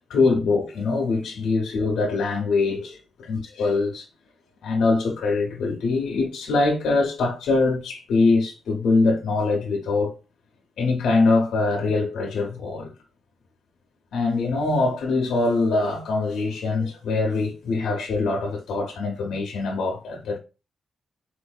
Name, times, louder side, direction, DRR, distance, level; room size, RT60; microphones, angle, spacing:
voice 1, 0.1-4.1 4.6-10.1 10.8-12.9 14.1-20.4, left 3 dB, 80° left, 0.6 m, -23 dB
4.1 x 2.5 x 2.2 m
cardioid pair, 80°, 0 cm